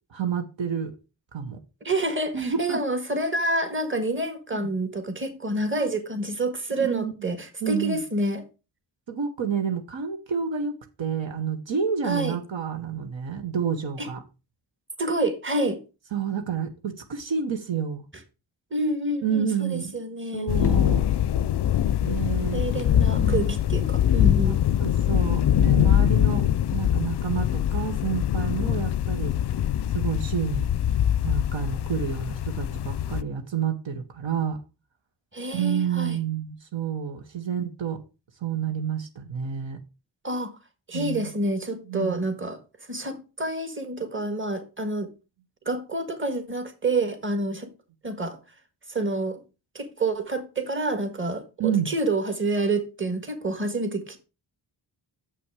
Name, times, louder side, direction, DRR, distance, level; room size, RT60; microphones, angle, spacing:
voice 1, 0.1-0.9 1.3-1.6 2.3-2.8 4.5-4.7 6.8-7.3 7.6-8.0 9.1-14.2 16.1-18.1 19.2-19.9 20.3-21.1 22.0-22.6 23.1-23.4 24.4-24.5 24.8-26.4 26.7-29.3 29.9-30.7 31.2-34.6 35.5-38.0 38.4-39.8 40.9-41.3 41.9-42.2 51.6-51.9, right 7 dB, 70° right, 1.1 m, -29 dB
voice 2, 1.8-8.4 12.0-12.4 14.0-14.1 15.0-15.8 18.7-20.5 22.5-24.6 35.3-36.2 40.2-40.5 40.9-42.6 42.9-45.1 45.6-47.7 48.0-48.4 48.9-49.4 49.7-54.2, right 2 dB, 25° right, 1.6 m, -28 dB
sound 1, 20.5-33.2, left 11 dB, 60° left, 0.5 m, -23 dB
7.1 x 5.8 x 4.7 m
wide cardioid pair, 75°, 47 cm